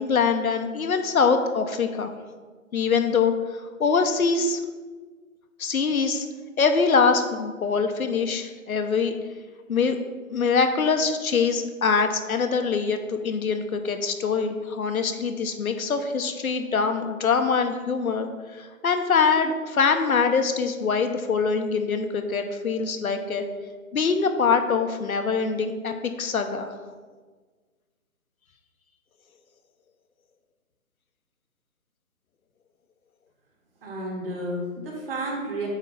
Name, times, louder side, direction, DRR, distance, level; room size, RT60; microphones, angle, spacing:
voice 1, 0.0-2.1 2.7-3.3 3.8-4.6 5.6-6.3 6.6-9.1 9.7-10.0 10.3-23.4 23.9-26.7, left 5 dB, 75° left, 6 dB, 0.9 m, -24 dB
voice 2, 33.8-35.7, right 1 dB, 40° right, -2 dB, 1.8 m, -31 dB
8.2 x 3.0 x 5.3 m, 1.4 s
figure-of-eight pair, 150°, 42 cm